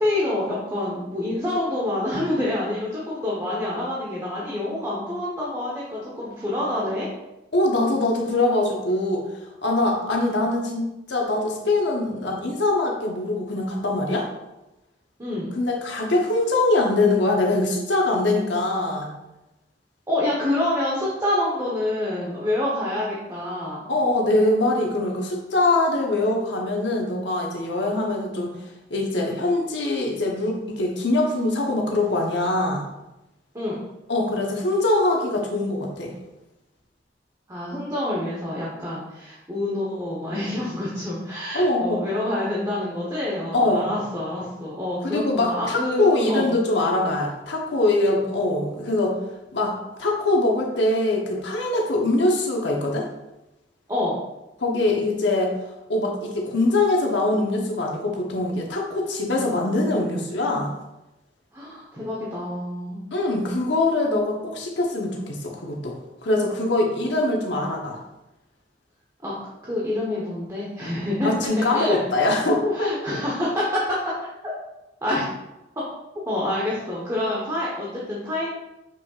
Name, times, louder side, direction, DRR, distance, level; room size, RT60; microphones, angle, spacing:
voice 1, 0.0-7.1 15.2-15.5 20.1-23.9 33.5-33.8 37.5-46.5 53.9-54.2 61.5-63.1 69.2-69.3 69.6-71.3 71.7-72.0 72.7-73.8 74.0-74.1 75.0-75.3 76.3-78.5, left 1 dB, 20° right, -6 dB, 1.1 m, -27 dB
voice 2, 7.5-14.3 15.6-19.1 23.9-28.5 28.9-32.9 34.1-36.1 41.5-42.0 43.5-43.8 45.0-49.2 49.5-53.1 54.6-55.5 55.9-60.7 63.1-66.0 66.2-68.0 71.2-72.9, left 2 dB, 80° left, 0 dB, 1.0 m, -23 dB
7.0 x 5.7 x 2.4 m, 0.98 s
head